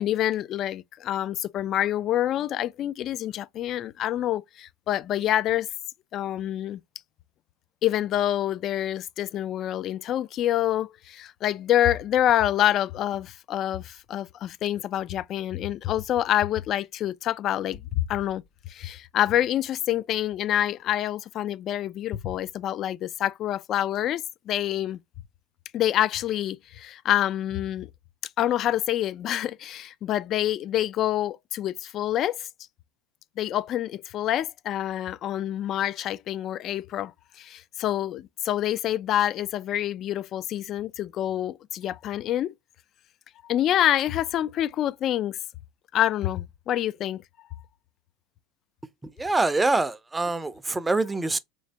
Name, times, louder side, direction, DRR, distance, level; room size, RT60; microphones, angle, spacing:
voice 1, 0.0-5.7 6.1-6.8 7.8-18.4 18.7-25.0 25.7-27.9 28.4-32.5 33.4-37.1 37.4-42.5 43.4-45.4 45.9-47.2, left 12 dB, 45° left, 0.4 m, -27 dB
voice 2, 49.0-51.4, right 2 dB, 10° right, 0.5 m, -25 dB
3.2 x 3.1 x 2.8 m
supercardioid pair, 105°, 0 cm